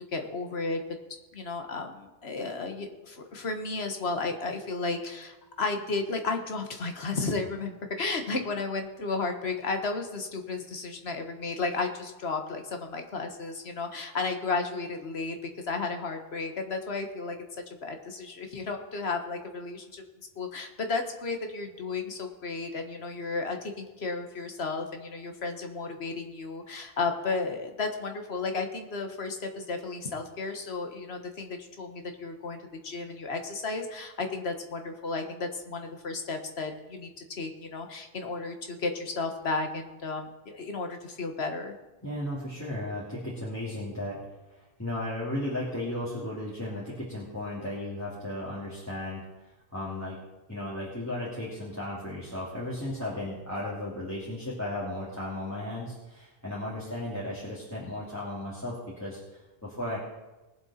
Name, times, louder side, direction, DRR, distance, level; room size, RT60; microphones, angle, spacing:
voice 1, 0.1-0.8 1.3-15.4 15.6-17.4 17.8-20.0 20.4-41.7, left 3 dB, 80° left, 5 dB, 1.6 m, -33 dB
voice 2, 42.0-44.2 44.5-50.2 50.5-60.0, left 1 dB, 15° left, -8 dB, 2.7 m, -35 dB
19.5 x 7.7 x 4.3 m, 1.1 s
omnidirectional pair, 1.0 m